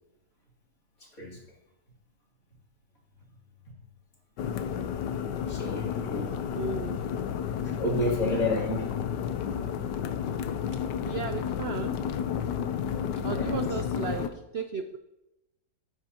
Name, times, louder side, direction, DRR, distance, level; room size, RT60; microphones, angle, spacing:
voice 1, 1.0-1.4 5.5-6.5 7.6-8.9 9.4-9.5 13.2-13.6, left 1 dB, 55° left, -3 dB, 3.2 m, -31 dB
sound 1, 4.4-14.3, left 8 dB, 90° left, 1.3 m, -31 dB
voice 2, 6.5-7.1 11.0-12.1 13.2-15.0, right 5 dB, 85° right, 7 dB, 0.5 m, -35 dB
14.0 x 9.6 x 2.9 m, 0.94 s
omnidirectional pair, 1.8 m